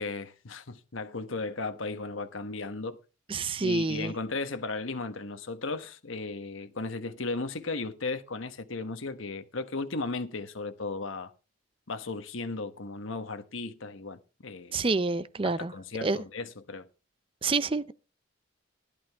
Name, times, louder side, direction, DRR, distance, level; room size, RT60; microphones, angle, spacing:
voice 1, 0.0-3.0 3.6-11.3 11.9-14.8 15.4-16.9, left 3 dB, 75° left, 1.2 m, -35 dB
voice 2, 3.3-4.1 14.7-15.7 16.0-16.2 17.4-17.9, right 3 dB, 25° right, 0.5 m, -28 dB
15.0 x 11.0 x 3.5 m
head